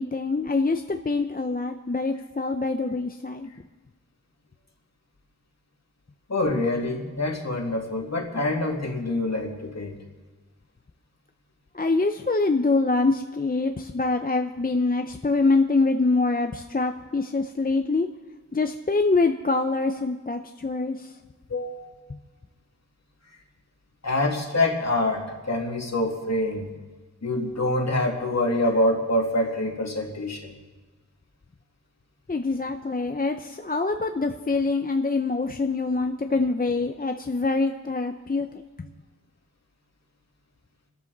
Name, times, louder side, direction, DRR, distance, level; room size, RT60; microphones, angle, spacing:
voice 1, 0.0-3.5 11.7-18.1 18.5-21.1 32.3-38.9, left 3 dB, 25° left, 5 dB, 0.7 m, -25 dB
voice 2, 6.3-10.0 21.5-21.9 24.0-26.7 27.2-30.5, left 1 dB, 55° left, 1 dB, 2.5 m, -26 dB
26.5 x 13.0 x 4.0 m, 1.3 s
wide cardioid pair, 80°, 32 cm